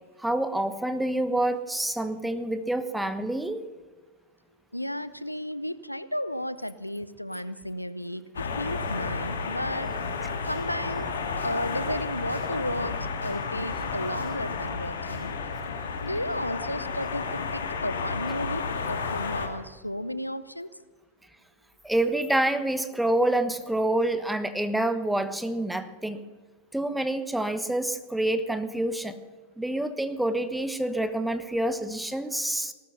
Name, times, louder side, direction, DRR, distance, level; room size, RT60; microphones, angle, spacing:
voice 1, 0.2-3.7 21.8-26.2 26.7-29.1 29.6-32.7, right 1 dB, 5° right, 11 dB, 1.2 m, -27 dB
voice 2, 4.7-9.9 10.5-11.0 11.4-15.3 16.0-20.7, equal, 90° left, 16 dB, 0.6 m, -33 dB
sound 1, 8.3-19.5, left 4 dB, 65° left, 2.2 m, -32 dB
sound 2, 10.3-15.5, equal, 75° right, 4.1 m, -46 dB
18.5 x 13.0 x 5.7 m, 1.3 s
figure-of-eight pair, 90°, 0 cm